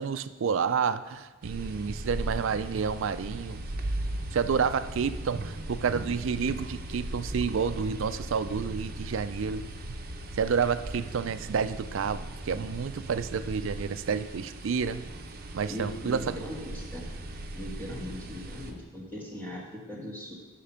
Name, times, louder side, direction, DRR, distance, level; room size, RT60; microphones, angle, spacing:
voice 1, 0.0-3.6 4.3-9.7 10.4-15.0 15.5-16.3, right 6 dB, 60° right, 13 dB, 0.4 m, -29 dB
sound 1, 1.4-18.7, right 1 dB, 45° right, 0.7 m, -38 dB
voice 2, 15.7-17.1 17.5-20.3, equal, 10° left, -4 dB, 1.5 m, -39 dB
8.5 x 5.8 x 5.7 m, 1.2 s
head